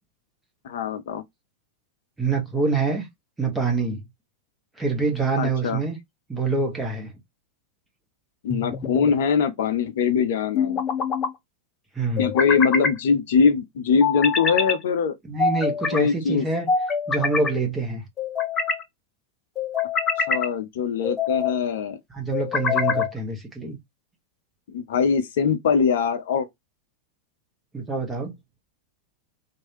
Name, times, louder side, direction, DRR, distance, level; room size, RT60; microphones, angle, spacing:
voice 1, 0.6-1.2 5.4-5.8 8.4-10.8 12.2-15.2 15.9-16.5 20.2-22.0 24.7-26.5, left 6 dB, 55° left, 0.5 m, -22 dB
voice 2, 2.2-3.1 3.4-4.0 4.8-6.0 6.3-7.1 11.9-12.3 15.2-16.7 17.1-18.0 22.1-23.8 27.7-28.3, right 4 dB, 10° right, 1.3 m, -25 dB
sound 1, 8.5-9.2 10.5-11.3 12.2-13.0 14.0-14.8 15.4-16.0 16.7-17.5 18.2-18.8 19.6-20.5 21.0-21.6 22.3-23.1, left 5 dB, 20° left, 0.8 m, -25 dB
3.0 x 2.6 x 2.9 m
figure-of-eight pair, 90°, 0 cm